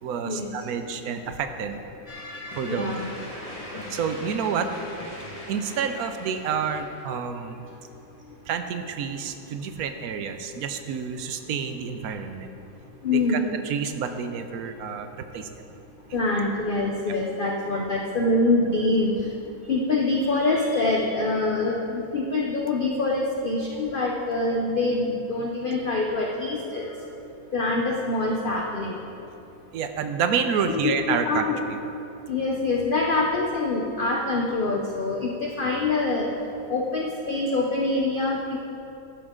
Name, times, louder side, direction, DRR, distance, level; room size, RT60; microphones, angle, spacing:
voice 1, 0.0-1.8 2.5-2.9 3.9-4.7 5.5-7.6 8.5-12.5 13.7-15.5 17.7-17.8 29.7-31.4, right 6 dB, 70° right, 7 dB, 1.2 m, -29 dB
sound 1, 2.1-7.1, left 1 dB, 20° left, 1.6 m, -40 dB
voice 2, 2.7-3.0 13.0-13.5 16.1-19.1 19.7-26.9 27.5-29.0 30.5-31.6 32.3-36.3 36.7-38.6, left 2 dB, 45° left, 0 dB, 0.8 m, -25 dB
12.5 x 10.5 x 3.8 m, 2.8 s
omnidirectional pair, 1.7 m